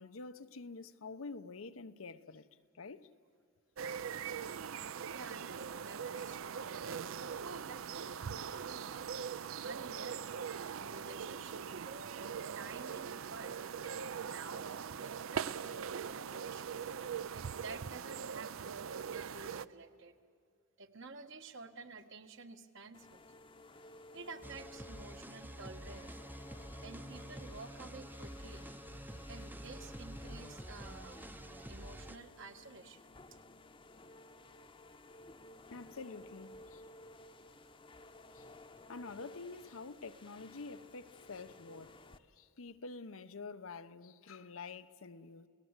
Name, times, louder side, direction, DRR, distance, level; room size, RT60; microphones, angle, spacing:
voice 1, 0.0-2.5 2.7-3.1 35.7-36.8 38.3-38.5 38.9-45.5, left 4 dB, 90° left, 0.8 m, -48 dB
sound 1, 3.8-19.7, right 7 dB, 80° right, 0.5 m, -41 dB
voice 2, 5.1-8.9 9.2-10.2 10.8-13.7 14.2-16.7 17.3-18.8 19.1-20.1 20.8-23.2 24.1-26.2 26.8-28.6 29.3-33.1, right 3 dB, 65° right, 1.4 m, -51 dB
sound 2, 22.9-42.2, left 2 dB, 25° left, 0.8 m, -56 dB
sound 3, 24.4-32.2, right 1 dB, 10° right, 0.6 m, -48 dB
29.5 x 18.0 x 8.1 m
head